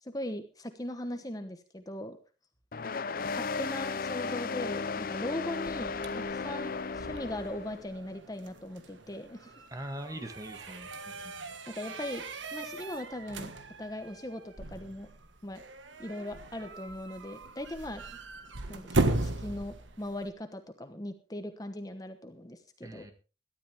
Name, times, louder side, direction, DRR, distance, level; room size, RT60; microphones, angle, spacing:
voice 1, 0.0-2.2 3.3-9.5 11.7-12.2 12.5-13.5 13.8-15.1 15.4-15.6 16.0-18.0 18.7-23.1, left 1 dB, 20° left, 8 dB, 1.1 m, -39 dB
sound 1, 2.7-7.8, left 4 dB, 50° left, 0.6 m, -35 dB
sound 2, 5.3-20.3, right 2 dB, 85° right, 1.6 m, -38 dB
voice 2, 9.7-11.5 22.8-23.1, right 1 dB, 20° right, 7 dB, 1.8 m, -42 dB
18.0 x 12.5 x 3.5 m, 0.33 s
head